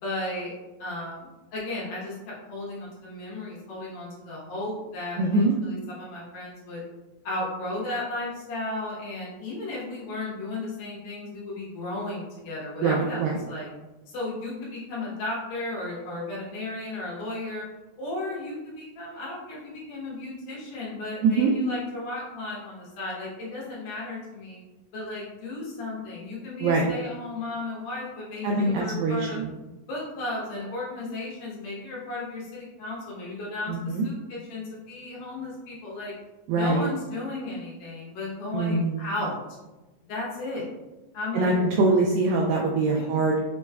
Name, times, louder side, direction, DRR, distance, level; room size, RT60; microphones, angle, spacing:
voice 1, 0.0-0.5 0.8-6.8 7.2-13.2 13.5-13.7 14.1-17.6 18.0-24.6 24.9-29.4 29.9-36.1 36.5-39.4 40.1-40.6 41.1-41.5 42.9-43.3, left 2 dB, 70° left, -5 dB, 2.8 m, -34 dB
voice 2, 5.2-5.5 12.8-13.4 21.2-21.5 26.6-26.9 28.4-29.5 33.7-34.1 36.5-36.8 38.5-39.0 41.3-43.5, right 3 dB, 85° right, -1 dB, 2.0 m, -23 dB
6.5 x 3.0 x 2.3 m, 1.1 s
omnidirectional pair, 4.4 m